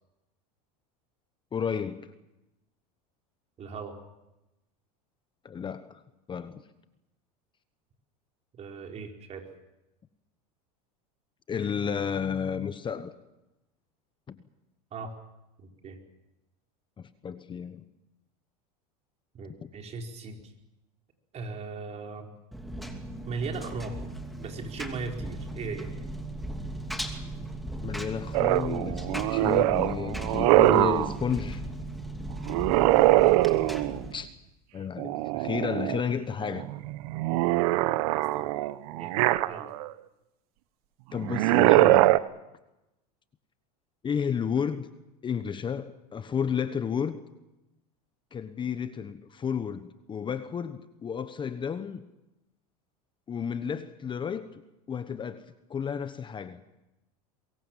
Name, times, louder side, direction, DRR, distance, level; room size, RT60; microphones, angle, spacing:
voice 1, 1.5-2.1 5.4-6.0 6.3-6.6 11.5-13.1 14.3-14.4 17.0-17.8 19.6-19.7 27.8-31.6 34.1-34.3 34.7-36.6 41.1-42.1 44.0-44.9 45.2-47.2 48.3-52.0 53.3-54.6 54.9-56.6, left 7 dB, 25° left, 1.2 m, -32 dB
voice 2, 3.6-4.0 8.5-9.5 14.9-15.1 15.6-16.0 19.3-20.5 21.3-22.3 23.2-24.0 24.4-25.9 33.0-33.4 38.1-39.7, right 4 dB, 35° right, 4.6 m, -38 dB
Engine, 22.5-34.1, right 1 dB, ahead, 2.8 m, -37 dB
sound 1, 28.3-31.1 32.5-34.0 35.0-36.0 36.4-39.9 41.2-42.2, right 18 dB, 70° right, 1.0 m, -23 dB
23.5 x 22.0 x 7.5 m
supercardioid pair, 115°, 19 cm